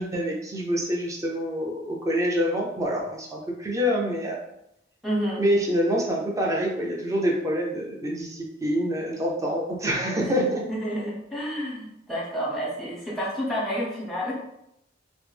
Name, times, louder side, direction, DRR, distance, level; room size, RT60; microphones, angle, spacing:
voice 1, 0.0-4.4 5.4-10.6, equal, 20° right, -2 dB, 0.6 m, -26 dB
voice 2, 5.0-5.4 10.2-10.3 10.7-14.3, equal, ahead, -5 dB, 0.9 m, -29 dB
3.1 x 2.0 x 3.3 m, 0.79 s
head